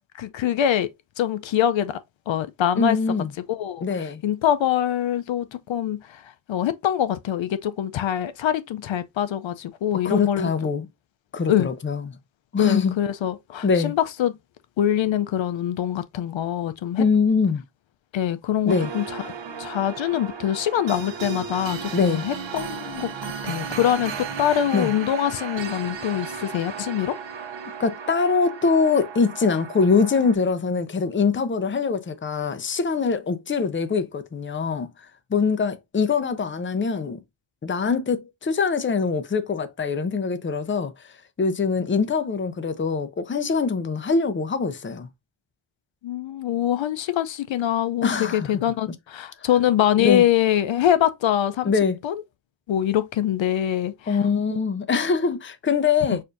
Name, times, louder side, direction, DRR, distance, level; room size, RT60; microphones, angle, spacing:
voice 1, 0.1-0.9 1.2-2.0 2.3-3.0 3.5-10.5 11.5-11.7 12.6-14.3 14.8-17.0 18.1-19.3 19.6-27.2 46.0-51.7 52.0-52.2 52.7-54.2 56.1-56.2, left 10 dB, 70° left, 0.6 m, -24 dB
voice 2, 2.8-3.3 3.8-4.2 10.0-10.9 11.3-12.0 12.5-13.0 13.6-13.9 17.0-17.6 18.7-18.9 21.9-22.2 24.7-24.9 27.8-34.9 35.3-37.2 37.6-40.9 41.4-45.1 48.0-48.6 50.0-50.2 51.6-52.0 54.1-56.2, left 5 dB, 25° left, 0.6 m, -23 dB
sound 1, 18.7-30.3, right 6 dB, 65° right, 1.0 m, -35 dB
6.5 x 2.6 x 2.5 m
wide cardioid pair, 115°, 48 cm